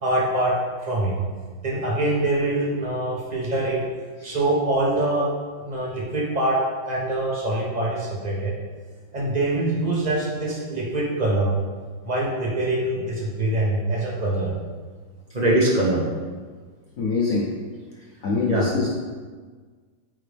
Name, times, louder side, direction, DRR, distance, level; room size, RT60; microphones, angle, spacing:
voice 1, 0.0-1.1 1.6-3.8 4.2-5.3 5.6-8.5 9.1-11.5 12.0-14.5 15.3-16.0 18.4-18.7, right 1 dB, 40° right, -4 dB, 0.6 m, -24 dB
voice 2, 17.0-17.5 18.2-18.9, left 4 dB, 90° left, -3 dB, 0.7 m, -24 dB
8.8 x 3.8 x 3.4 m, 1.5 s
omnidirectional pair, 2.3 m